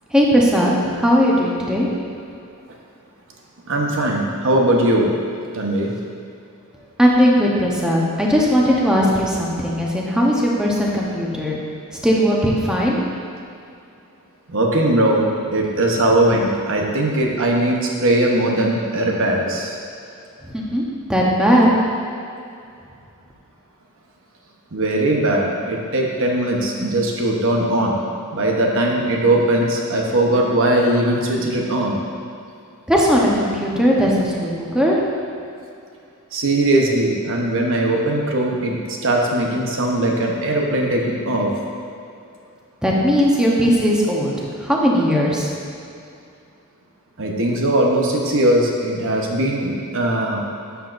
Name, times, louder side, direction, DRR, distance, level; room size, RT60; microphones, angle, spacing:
voice 1, 0.1-1.9 7.0-11.6 12.0-13.0 20.5-20.8 21.1-21.7 32.9-35.0 42.8-44.3 44.6-45.5, equal, 5° right, -4 dB, 0.9 m, -18 dB
voice 2, 3.7-5.1 5.5-5.9 14.5-19.8 24.7-28.0 28.3-32.0 36.3-41.5 47.2-50.4, right 1 dB, 60° right, 0 dB, 1.0 m, -19 dB
9.9 x 7.1 x 2.6 m, 2.5 s
head